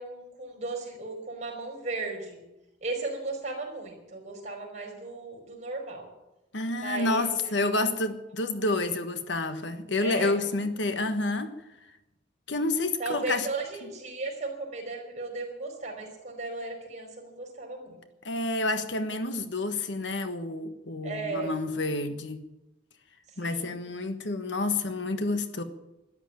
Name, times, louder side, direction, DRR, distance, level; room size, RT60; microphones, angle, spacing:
voice 1, 0.0-2.4 2.8-6.1 6.7-7.8 10.0-10.3 13.0-18.0 21.0-21.6 23.4-23.8, right 3 dB, 40° right, 4.9 m, -36 dB
voice 2, 6.5-11.5 12.5-13.5 18.2-22.4 23.4-25.6, left 2 dB, 75° left, 1.4 m, -29 dB
13.0 x 11.5 x 9.0 m
head